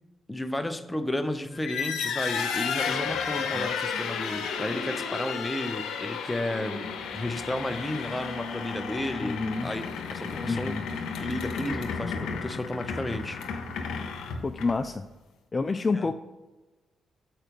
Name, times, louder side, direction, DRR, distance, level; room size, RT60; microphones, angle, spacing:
voice 1, 0.3-10.8 11.2-13.4 15.9-16.1, left 1 dB, 15° left, 8 dB, 0.7 m, -33 dB
sound 1, 1.5-15.0, left 6 dB, 90° left, 0.9 m, -33 dB
voice 2, 9.2-9.7 10.5-10.8 14.4-15.0 15.5-16.1, left 4 dB, 35° left, 8 dB, 0.4 m, -28 dB
6.6 x 4.9 x 4.6 m, 1.2 s
cardioid pair, 70°, 0 cm